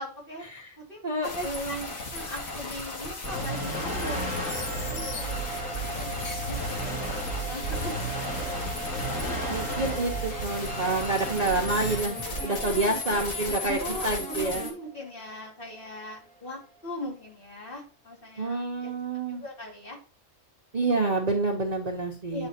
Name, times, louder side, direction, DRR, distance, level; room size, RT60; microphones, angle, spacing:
voice 1, 0.0-0.4 0.8-1.8 2.1-8.3 8.5-8.6 9.0-9.5 12.3-12.6 13.8-18.9 19.3-20.0 22.3-22.5, left 1 dB, 40° left, -2 dB, 2.7 m, -40 dB
voice 2, 1.0-1.9 9.5-14.7 18.4-19.4 20.7-22.5, right 2 dB, 35° right, -1 dB, 1.0 m, -28 dB
sound 1, 1.2-14.7, left 2 dB, 90° left, 2.0 m, -36 dB
sound 2, 3.2-12.0, right 1 dB, 75° left, 3.0 m, -34 dB
sound 3, 4.0-16.9, right 2 dB, 5° left, 1.3 m, -41 dB
9.4 x 4.2 x 2.9 m, 0.39 s
omnidirectional pair, 1.4 m